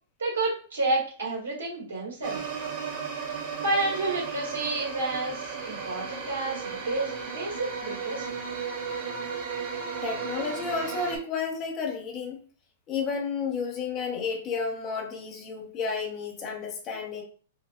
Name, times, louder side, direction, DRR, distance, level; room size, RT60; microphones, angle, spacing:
voice 1, 0.2-2.4 3.6-8.3, right 2 dB, 85° right, -3 dB, 1.8 m, -30 dB
sound 1, 2.2-11.2, right 5 dB, 45° right, 1.7 m, -35 dB
voice 2, 10.0-12.4 12.9-17.2, left 5 dB, 35° left, 1 dB, 1.2 m, -31 dB
4.5 x 2.6 x 2.4 m, 0.42 s
hypercardioid pair, 115°, 0 cm